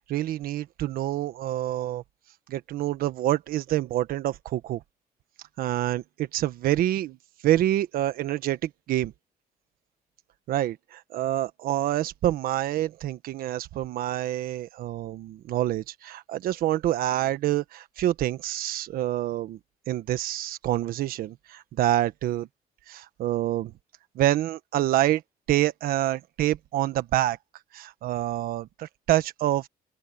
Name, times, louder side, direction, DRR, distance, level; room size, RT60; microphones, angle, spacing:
voice 1, 0.1-2.0 2.5-4.8 5.6-7.2 7.4-9.1 10.5-19.6 19.9-22.5 22.9-23.7 24.1-25.2 25.5-27.4 27.7-29.7, right 13 dB, 70° right, 1.3 m, -27 dB
open air
cardioid pair, 165°, 15 cm